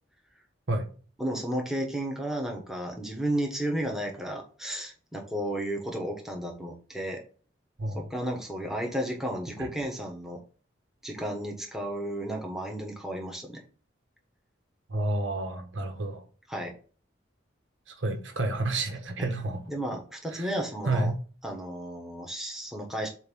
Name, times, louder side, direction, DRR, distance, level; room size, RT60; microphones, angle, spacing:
voice 1, 1.2-7.2 7.9-10.4 11.0-13.6 16.5-16.7 19.7-21.1 21.4-23.1, right 1 dB, ahead, 1.2 m, -33 dB
voice 2, 14.9-16.2 17.9-19.6 20.3-20.5 20.8-21.2, right 2 dB, 80° right, 1.4 m, -30 dB
7.9 x 2.7 x 5.4 m
head